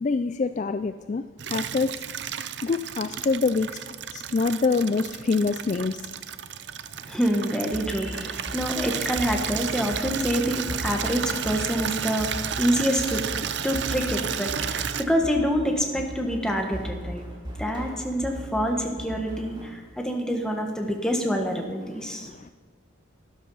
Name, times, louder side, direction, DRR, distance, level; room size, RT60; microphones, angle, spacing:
voice 1, 0.0-2.0 2.6-3.8 4.1-6.1 22.1-22.5, left 4 dB, 35° left, 0.3 m, -26 dB
Water tap faucet / Liquid, 1.4-15.0, right 8 dB, 55° right, 0.6 m, -32 dB
voice 2, 7.0-13.3 13.6-17.2 17.6-22.3, equal, 5° left, 1.5 m, -27 dB
sound 1, 7.7-19.7, equal, 25° right, 2.2 m, -38 dB
12.5 x 12.0 x 5.6 m
head